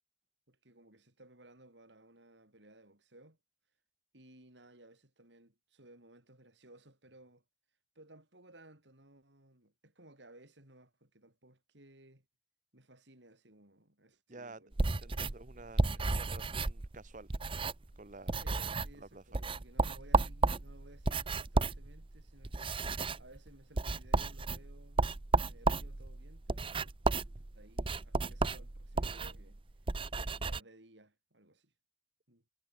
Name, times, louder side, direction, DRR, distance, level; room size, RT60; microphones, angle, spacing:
voice 1, 0.5-3.4 4.1-7.4 8.0-12.3 12.7-14.7 15.1-16.1 18.3-27.3 27.5-29.6 30.2-31.7 32.3-32.4, right 1 dB, 85° right, 7.4 m, -59 dB
voice 2, 14.3-14.6 15.0-17.3 17.9-18.3 18.9-19.5, right 3 dB, 45° right, 1.4 m, -51 dB
sound 1, 14.7-18.0 18.3-19.0 19.3-30.6, right 3 dB, 30° right, 0.7 m, -33 dB
head